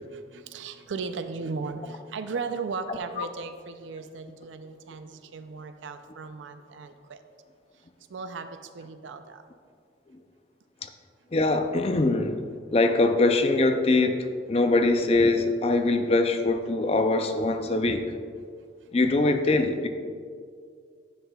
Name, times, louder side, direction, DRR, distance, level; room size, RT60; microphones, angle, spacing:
voice 1, 0.0-7.2 8.1-9.4 18.8-18.9, right 4 dB, 90° right, 9 dB, 0.4 m, -36 dB
voice 2, 11.3-12.4 12.7-18.0 18.9-19.9, left 2 dB, 35° left, 7 dB, 0.4 m, -23 dB
10.0 x 7.5 x 2.3 m, 2.1 s
head